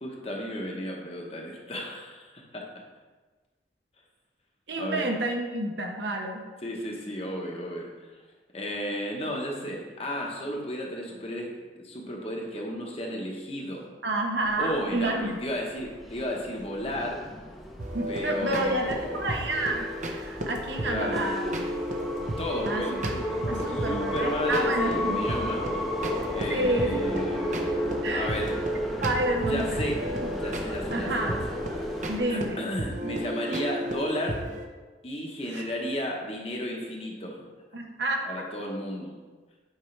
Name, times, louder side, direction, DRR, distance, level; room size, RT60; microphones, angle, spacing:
voice 1, 0.0-2.6 4.8-5.1 6.6-8.1 8.5-11.5 11.8-13.9 14.6-17.2 18.1-19.3 20.8-21.2 22.4-25.9 26.3-27.6 28.1-28.6 29.4-31.8 32.3-34.4 35.0-37.4 38.2-39.1, equal, 35° left, -1 dB, 1.0 m, -33 dB
voice 2, 4.7-6.4 14.0-15.4 17.9-21.7 22.7-23.0 23.5-25.2 26.5-27.2 28.0-28.4 29.0-30.3 30.9-31.4 32.1-32.6 35.5-35.6 37.7-38.2, right 1 dB, 75° right, 2 dB, 1.0 m, -29 dB
sound 1, 14.4-32.2, equal, ahead, 0.7 m, -34 dB
sound 2, 17.8-34.7, equal, 45° right, 0.7 m, -34 dB
8.1 x 4.7 x 3.3 m, 1.3 s
head